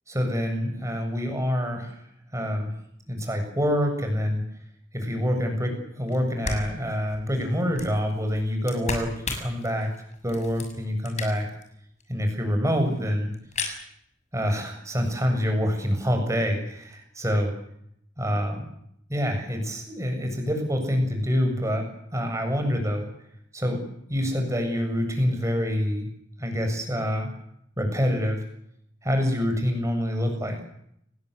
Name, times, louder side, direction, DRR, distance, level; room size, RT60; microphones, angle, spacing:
voice 1, 0.1-2.0 2.3-2.7 3.1-4.4 4.9-9.9 10.2-11.5 12.1-13.3 14.3-17.5 18.2-18.7 19.1-23.1 23.5-23.8 24.1-26.1 26.4-27.4 27.8-28.4 29.0-30.6, equal, 15° right, 4 dB, 7.6 m, -26 dB
sound 1, 6.1-6.2 6.4-11.6 12.0-12.1 12.3-12.4 12.5-13.0 13.3-13.8, left 3 dB, 40° left, 6.6 m, -35 dB
29.5 x 20.5 x 8.3 m, 0.73 s
head